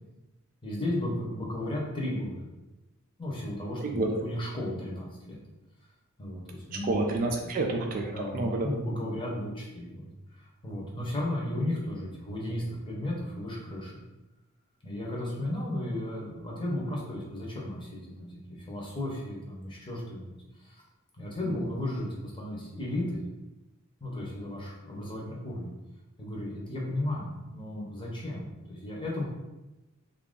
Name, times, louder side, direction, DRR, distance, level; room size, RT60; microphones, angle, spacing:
voice 1, 0.6-2.4 3.2-5.4 6.2-6.9 8.1-14.0 14.8-20.3 20.6-20.8 21.2-23.2 24.0-25.7 26.2-29.2, left 1 dB, 20° left, -4 dB, 0.8 m, -34 dB
voice 2, 3.8-4.1 6.8-8.7 21.4-21.6, right 2 dB, 40° right, 2 dB, 0.3 m, -29 dB
2.8 x 2.5 x 3.6 m, 1.0 s
head